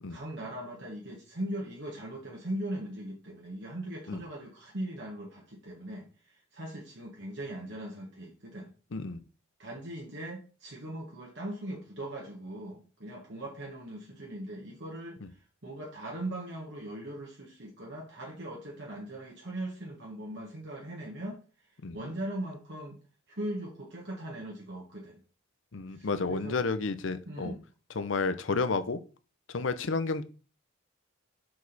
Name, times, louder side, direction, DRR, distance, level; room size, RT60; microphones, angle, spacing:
voice 1, 0.1-8.7 9.6-21.4 21.9-23.0 23.3-25.2 25.9-26.6 27.2-27.6, right 1 dB, 60° right, -3 dB, 1.5 m, -40 dB
voice 2, 8.9-9.2 15.2-15.3 21.8-22.0 25.7-27.5 28.0-29.0 29.5-30.2, left 4 dB, 65° left, 11 dB, 0.7 m, -31 dB
6.4 x 4.7 x 4.1 m, 0.36 s
head